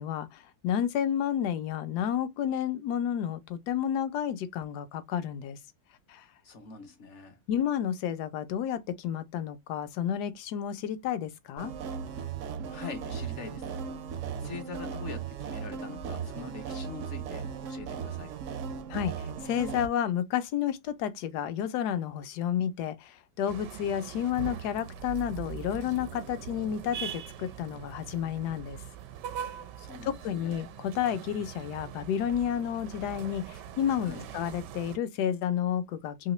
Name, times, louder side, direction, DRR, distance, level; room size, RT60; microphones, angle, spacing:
voice 1, 0.0-5.6 6.1-6.2 7.5-11.7 18.9-28.8 30.0-36.3, left 9 dB, 75° left, 1.1 m, -31 dB
voice 2, 6.4-7.4 12.7-13.9 14.4-18.4 29.8-30.6 34.0-34.3, left 5 dB, 60° left, 0.8 m, -43 dB
sound 1, 11.6-19.9, right 6 dB, 70° right, 0.7 m, -37 dB
sound 2, 23.5-35.0, right 9 dB, 90° right, 1.2 m, -42 dB
3.1 x 2.8 x 2.9 m
omnidirectional pair, 1.8 m